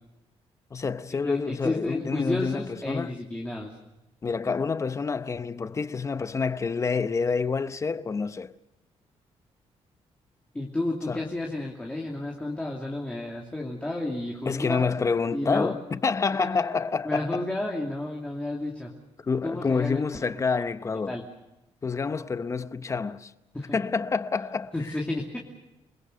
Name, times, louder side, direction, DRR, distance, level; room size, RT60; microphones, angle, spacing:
voice 1, 0.7-3.1 4.2-8.5 11.1-11.2 14.5-17.5 19.2-21.2 21.8-23.3 23.7-24.7, left 5 dB, 25° left, 0.8 m, -28 dB
voice 2, 1.2-3.7 10.5-14.9 15.3-15.8 16.4-16.5 17.0-19.0 19.4-20.3 21.1-21.2 23.5-23.8 24.7-25.4, left 2 dB, 10° left, 2.7 m, -31 dB
29.0 x 21.0 x 6.8 m
cardioid pair, 135°, 11 cm